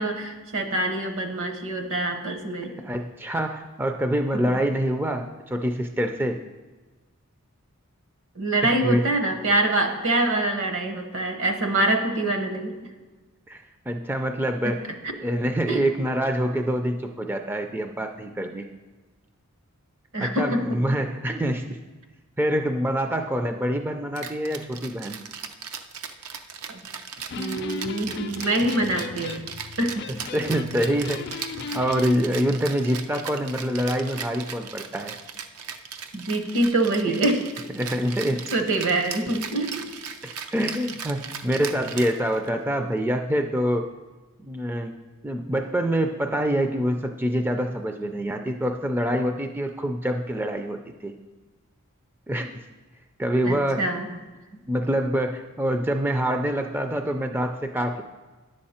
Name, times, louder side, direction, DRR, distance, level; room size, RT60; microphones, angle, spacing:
voice 1, 0.0-2.8 4.3-4.6 8.3-12.9 14.6-14.8 15.7-15.8 20.1-20.9 26.7-26.8 27.4-29.4 29.8-30.1 36.1-37.4 38.5-39.9 53.4-54.1, right 2 dB, 65° right, 6 dB, 1.1 m, -25 dB
voice 2, 2.8-6.4 8.6-9.0 13.5-14.9 15.2-18.7 20.2-21.8 22.4-25.2 30.3-31.4 31.7-35.1 37.1-37.2 37.8-38.5 40.2-43.9 44.4-45.0 45.2-51.1 52.3-52.5 53.2-53.9 54.5-58.0, equal, 10° right, 5 dB, 0.4 m, -26 dB
Rattle (instrument), 24.2-42.6, right 7 dB, 80° right, 0.6 m, -38 dB
Electric guitar, 27.2-32.2, left 4 dB, 50° left, 0.5 m, -36 dB
10.5 x 6.4 x 4.3 m, 1.3 s
head